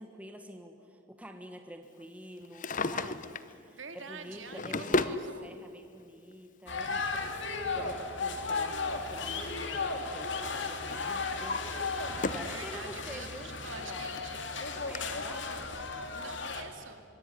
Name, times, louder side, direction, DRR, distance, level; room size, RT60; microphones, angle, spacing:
voice 1, 0.0-8.8 9.1-14.1 14.7-15.5, equal, 5° right, 5 dB, 1.5 m, -48 dB
Drawer open or close, 2.4-3.5 4.3-5.2 6.3-6.4 8.2-9.7 10.0-10.4 10.9-12.6 13.0-13.1 13.8-13.9 14.2-14.3 14.9-15.0, left 3 dB, 40° left, 0.8 m, -35 dB
voice 2, 3.8-5.6 12.5-14.5 16.1-17.0, right 4 dB, 65° right, 6 dB, 2.6 m, -46 dB
sound 1, 6.7-16.6, left 4 dB, 60° left, 2.5 m, -35 dB
25.0 x 22.5 x 10.0 m, 2.5 s
head